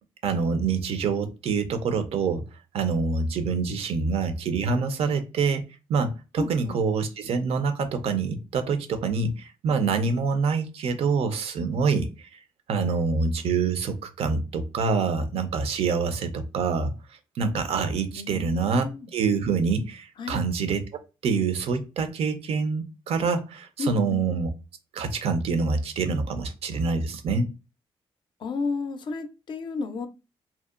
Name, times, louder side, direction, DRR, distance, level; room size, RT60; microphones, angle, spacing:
voice 1, 0.2-2.4 2.7-5.6 5.9-12.3 12.7-16.9 17.4-18.9 19.1-20.9 21.2-24.5 24.9-27.5, right 4 dB, 70° right, 0.5 m, -26 dB
voice 2, 6.4-6.8 18.2-19.1 20.2-20.4 23.8-24.2 28.4-30.1, left 4 dB, 50° left, 0.4 m, -32 dB
2.7 x 2.1 x 2.3 m
cardioid pair, 90°, 11 cm